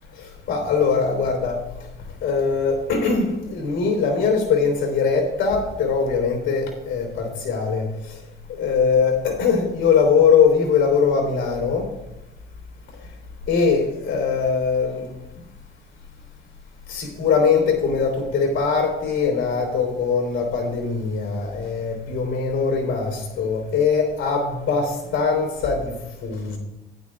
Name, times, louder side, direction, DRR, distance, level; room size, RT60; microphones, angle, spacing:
voice 1, 0.5-1.6 2.2-7.8 8.5-11.9 13.5-15.1 16.9-25.9 26.2-26.6, left 5 dB, 75° left, 2 dB, 3.4 m, -21 dB
14.5 x 10.0 x 2.4 m, 0.96 s
cardioid pair, 90°, 20 cm